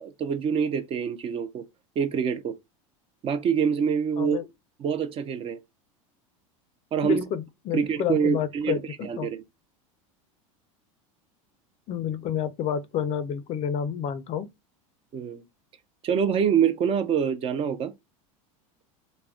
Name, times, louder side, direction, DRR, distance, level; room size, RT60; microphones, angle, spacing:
voice 1, 0.0-1.7 2.0-2.6 3.2-4.4 4.8-5.6 6.9-7.2 7.7-9.4 15.1-15.4 16.0-17.9, right 7 dB, 35° right, 0.4 m, -25 dB
voice 2, 7.0-9.3 11.9-14.5, left 8 dB, 40° left, 0.4 m, -29 dB
2.3 x 2.1 x 3.5 m
supercardioid pair, 110°, 17 cm